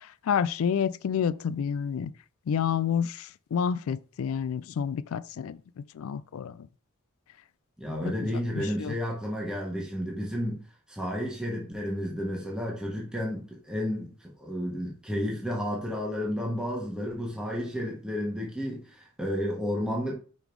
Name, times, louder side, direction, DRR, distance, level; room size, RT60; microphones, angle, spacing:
voice 1, 0.3-2.1 2.5-6.6 8.6-9.0, left 7 dB, 70° left, 0.3 m, -29 dB
voice 2, 7.8-10.6 10.9-20.1, equal, 5° right, 1.2 m, -32 dB
5.3 x 3.8 x 4.6 m
head